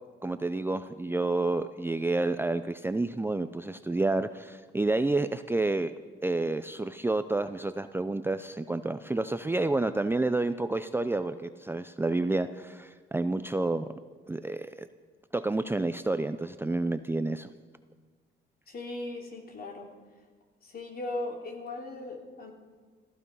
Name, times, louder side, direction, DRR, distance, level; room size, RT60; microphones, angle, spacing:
voice 1, 0.2-5.9 6.2-13.9 14.3-14.9 15.3-17.5, right 2 dB, 10° right, 10 dB, 0.5 m, -29 dB
voice 2, 18.7-19.9 20.6-22.5, left 2 dB, 50° left, 2 dB, 3.0 m, -38 dB
15.0 x 14.5 x 5.5 m, 1.5 s
cardioid pair, 90°, 20 cm